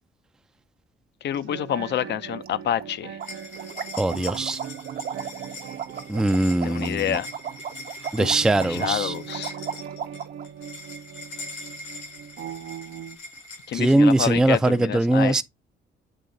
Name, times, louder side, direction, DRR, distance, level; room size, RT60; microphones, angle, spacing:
voice 1, 1.2-3.2 6.6-7.3 8.2-8.3 8.7-9.5 13.7-15.4, left 10 dB, 60° left, 0.5 m, -28 dB
sound 1, 1.3-13.2, right 8 dB, 80° right, 0.8 m, -40 dB
sound 2, 2.4-2.5 2.8-2.9 3.2-10.5, right 8 dB, 50° right, 0.7 m, -35 dB
sound 3, 3.2-14.8, left 2 dB, 85° left, 4.7 m, -42 dB
voice 2, 4.0-4.6 6.1-7.2 8.1-9.1 13.7-15.4, right 2 dB, 5° right, 0.4 m, -21 dB
8.4 x 3.1 x 3.8 m
cardioid pair, 90°, 20 cm